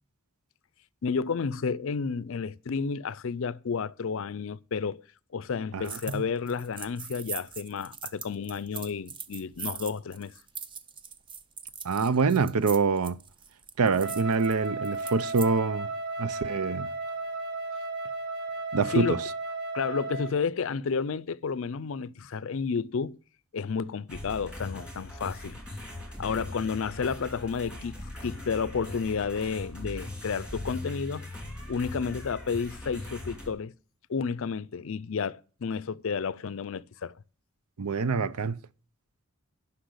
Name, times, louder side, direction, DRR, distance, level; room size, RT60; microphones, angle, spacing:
voice 1, 1.0-5.0 5.3-10.3 18.8-19.1 19.7-23.2 23.5-25.6 26.2-31.2 31.7-33.7 34.1-37.1, left 5 dB, 60° left, 0.4 m, -31 dB
voice 2, 5.7-6.2 11.8-13.2 13.8-15.9 16.2-16.9 18.7-19.2 37.8-38.6, right 4 dB, 80° right, 0.6 m, -26 dB
sound 1, 5.8-6.2 6.5-15.5, right 6 dB, 20° right, 0.5 m, -41 dB
Wind instrument woodwind instrument, 14.0-20.4, right 3 dB, 50° right, 1.6 m, -34 dB
sound 2, 24.1-33.5, left 1 dB, 5° right, 3.1 m, -40 dB
10.0 x 5.8 x 7.9 m
head